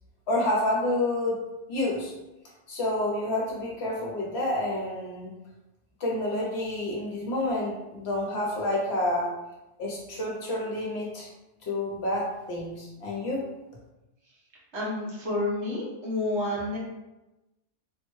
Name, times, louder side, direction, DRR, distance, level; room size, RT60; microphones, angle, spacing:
voice 1, 0.3-1.4 1.7-2.1 2.7-5.3 6.0-9.3 9.8-11.3 11.6-13.4, left 1 dB, 60° left, -3 dB, 0.9 m, -29 dB
voice 2, 14.7-16.8, left 2 dB, 60° right, -5 dB, 1.3 m, -29 dB
3.7 x 2.1 x 3.0 m, 1.0 s
omnidirectional pair, 1.3 m